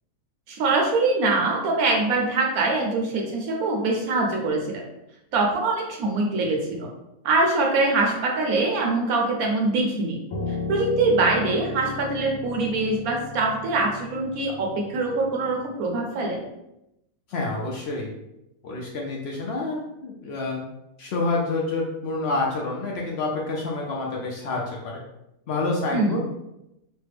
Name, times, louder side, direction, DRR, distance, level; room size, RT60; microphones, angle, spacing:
voice 1, 0.5-4.8 5.3-6.9 7.2-10.2 10.7-16.4 25.9-26.2, right 3 dB, 75° right, 0 dB, 1.1 m, -23 dB
Piano, 10.3-15.6, left 3 dB, 85° left, 1.3 m, -35 dB
voice 2, 17.3-18.1 18.6-20.6 21.0-25.0 25.5-26.3, left 3 dB, 65° left, -2 dB, 0.6 m, -28 dB
3.2 x 2.1 x 3.3 m, 0.86 s
omnidirectional pair, 1.6 m